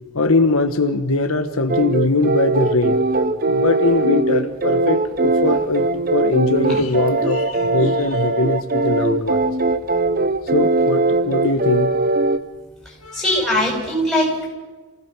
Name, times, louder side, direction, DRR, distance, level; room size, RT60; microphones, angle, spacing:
voice 1, 0.1-3.0 3.5-9.4 10.5-11.9 13.0-13.4, left 3 dB, 75° left, 8 dB, 1.2 m, -21 dB
sound 1, 1.7-12.4, right 2 dB, 40° right, 0.9 m, -20 dB
voice 2, 13.1-14.5, left 1 dB, ahead, -3 dB, 7.1 m, -20 dB
27.5 x 17.0 x 6.0 m, 1.3 s
head